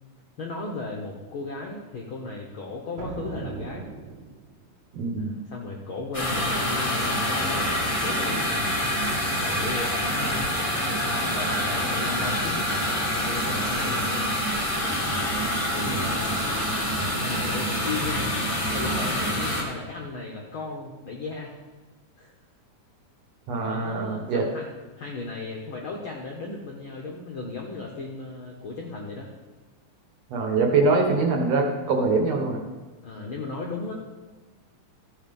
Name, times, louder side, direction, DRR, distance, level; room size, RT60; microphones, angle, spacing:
voice 1, 0.4-3.9 5.2-8.5 9.1-12.9 13.2-14.4 15.7-16.5 16.9-18.3 18.7-21.5 22.2-22.3 23.7-24.7 25.0-29.3 33.0-33.9, left 3 dB, 65° left, -1 dB, 1.3 m, -36 dB
sound 1, 3.0-4.7, right 4 dB, 80° right, 2.6 m, -38 dB
voice 2, 4.9-5.3 15.8-16.1 23.5-24.5 30.3-32.6, right 3 dB, 60° right, 2 dB, 2.2 m, -23 dB
sound 2, 6.1-19.6, equal, 20° left, 0.7 m, -26 dB
14.0 x 5.5 x 5.3 m, 1.3 s
omnidirectional pair, 3.6 m